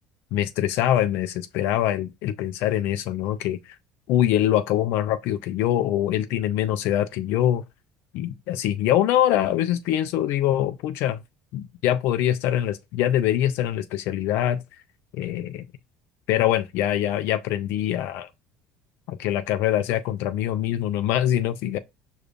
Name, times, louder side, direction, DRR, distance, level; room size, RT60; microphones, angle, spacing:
voice 1, 0.3-3.6 4.1-7.6 8.1-11.2 11.5-14.6 15.1-15.6 16.3-18.3 19.1-21.8, left 12 dB, 75° left, 0.4 m, -24 dB
5.0 x 2.3 x 2.4 m
supercardioid pair, 95°, 4 cm